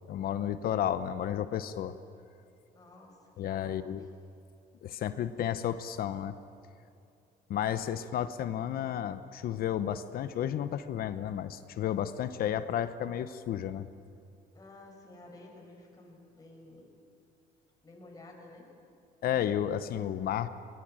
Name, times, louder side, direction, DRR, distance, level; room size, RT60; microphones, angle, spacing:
voice 1, 0.1-1.9 3.4-4.1 4.8-6.3 7.5-13.9 19.2-20.5, left 10 dB, 60° left, 12 dB, 0.9 m, -32 dB
voice 2, 2.7-3.2 3.6-3.8 14.5-16.9 17.8-18.7, left 2 dB, 20° left, -1 dB, 5.9 m, -52 dB
21.5 x 20.5 x 8.9 m, 2.5 s
cardioid pair, 110°, 17 cm